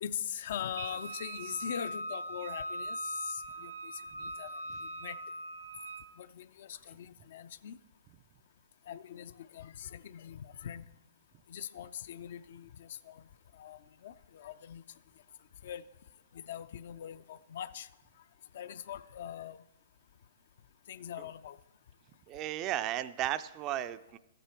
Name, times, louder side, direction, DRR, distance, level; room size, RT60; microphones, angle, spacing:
voice 1, 0.0-3.0 3.2-3.7 4.4-4.5 5.0-5.2 6.2-7.8 8.9-10.8 11.5-12.7 13.1-13.2 13.6-14.8 15.6-15.8 16.5-17.9 18.5-19.6 20.9-21.6, left 9 dB, 60° left, 14 dB, 0.4 m, -41 dB
Wind instrument woodwind instrument, 0.8-6.1, right 1 dB, 85° right, 0.7 m, -41 dB
voice 2, 22.3-24.2, right 12 dB, 30° right, 13 dB, 0.4 m, -34 dB
13.0 x 9.1 x 4.4 m, 0.93 s
hypercardioid pair, 140°, 0 cm